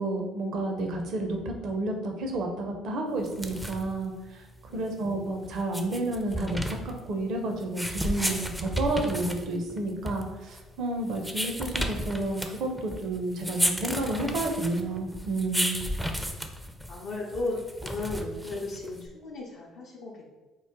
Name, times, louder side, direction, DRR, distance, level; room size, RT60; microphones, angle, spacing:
voice 1, 0.0-4.4 4.7-15.8, right 2 dB, 60° right, 2 dB, 0.5 m, -31 dB
sound 1, 3.2-19.1, equal, ahead, 0.4 m, -34 dB
voice 2, 4.7-5.0 16.9-20.2, left 2 dB, 65° left, -4 dB, 0.5 m, -35 dB
3.0 x 2.1 x 3.6 m, 1.1 s
hypercardioid pair, 55°, 0 cm